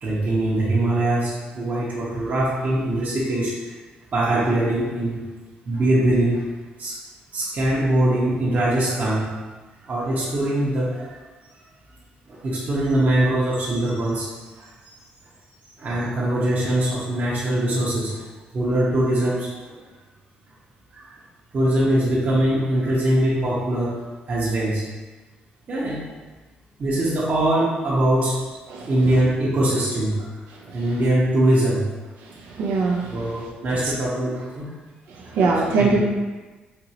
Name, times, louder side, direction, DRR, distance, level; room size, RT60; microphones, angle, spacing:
voice 1, 0.0-3.8 4.1-5.2 5.7-6.5 6.8-6.9 7.3-9.3 9.8-11.2 12.3-14.7 15.8-18.2 18.5-19.8 20.9-21.1 21.5-24.0 24.3-24.8 25.7-26.0 26.8-28.4 28.9-30.4 30.7-32.1 33.1-34.7 35.3-35.4 35.8-36.0, right 1 dB, 45° right, -7 dB, 0.9 m, -22 dB
voice 2, 28.7-29.2 30.6-30.8 32.2-33.4 33.8-33.9 35.1-36.0, right 4 dB, 85° right, -1 dB, 0.6 m, -24 dB
4.4 x 2.6 x 2.9 m, 1.3 s
cardioid pair, 85°, 3 cm